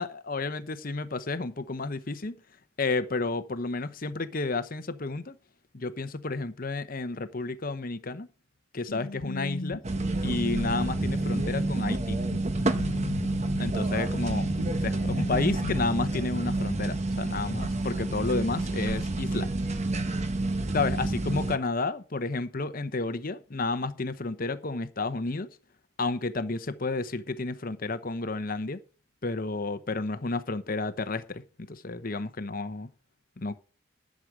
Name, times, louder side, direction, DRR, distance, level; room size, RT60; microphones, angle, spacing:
voice 1, 0.0-2.4 2.8-5.4 5.7-8.3 8.7-9.8 10.2-12.2 13.6-14.5 14.8-19.5 20.7-25.5 26.0-28.8 29.2-32.9 33.4-33.6, left 3 dB, 40° left, 0.8 m, -31 dB
sound 1, 8.9-15.7, left 2 dB, 75° left, 0.9 m, -38 dB
sound 2, 9.8-21.6, right 2 dB, 30° right, 1.0 m, -29 dB
11.5 x 6.4 x 7.5 m
head